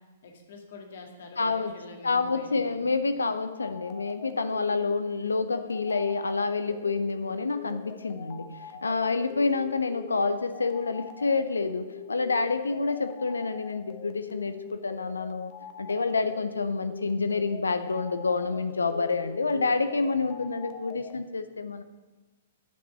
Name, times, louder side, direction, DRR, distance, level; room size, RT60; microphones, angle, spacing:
voice 1, 0.2-2.9, left 3 dB, 60° left, 2 dB, 2.0 m, -46 dB
voice 2, 1.4-1.7 2.0-15.5 15.8-21.8, left 4 dB, 80° left, 10 dB, 0.6 m, -28 dB
sound 1, 3.6-21.2, left 8 dB, 40° left, 0.8 m, -45 dB
10.5 x 5.9 x 7.1 m, 1.2 s
figure-of-eight pair, 115°, 0 cm